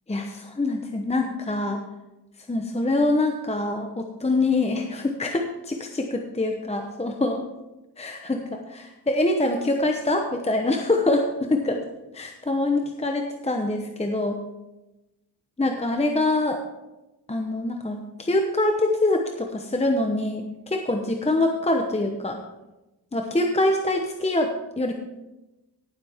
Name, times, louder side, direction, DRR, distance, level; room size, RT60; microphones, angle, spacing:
voice 1, 0.1-1.8 2.5-7.4 8.0-11.8 12.1-14.4 15.6-16.6 17.3-22.4 23.1-24.9, left 2 dB, 15° left, 3 dB, 0.9 m, -25 dB
17.5 x 7.7 x 3.6 m, 1.0 s
wide cardioid pair, 100°, 40 cm